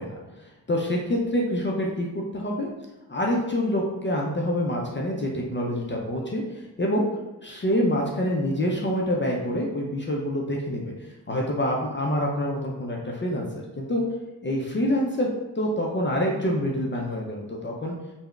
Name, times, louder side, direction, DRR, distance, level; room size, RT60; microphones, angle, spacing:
voice 1, 0.0-2.7 3.1-7.0 7.4-14.0 14.4-15.3 15.6-17.9, equal, 30° left, -2 dB, 0.4 m, -26 dB
3.6 x 2.1 x 2.3 m, 1.1 s
cardioid pair, 70°, 41 cm